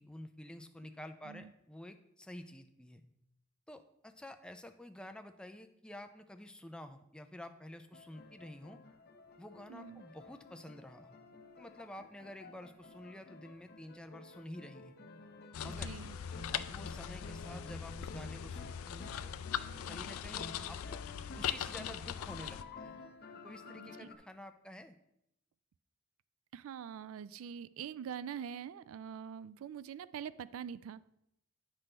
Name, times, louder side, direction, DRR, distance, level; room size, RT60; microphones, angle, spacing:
voice 1, 0.0-3.0 3.7-8.8 9.4-11.2 11.6-15.0 15.6-15.9 16.5-19.3 19.9-21.0 21.3-23.0 23.4-25.0, left 1 dB, 5° left, 7 dB, 0.4 m, -50 dB
sound 1, 7.9-24.2, left 3 dB, 50° left, 0.7 m, -52 dB
voice 2, 9.7-10.0 15.6-16.2 23.7-24.1 26.5-31.0, right 8 dB, 75° right, 18 dB, 0.3 m, -44 dB
sound 2, 15.5-22.6, left 9 dB, 80° left, 0.4 m, -40 dB
8.8 x 6.1 x 3.3 m, 0.79 s
head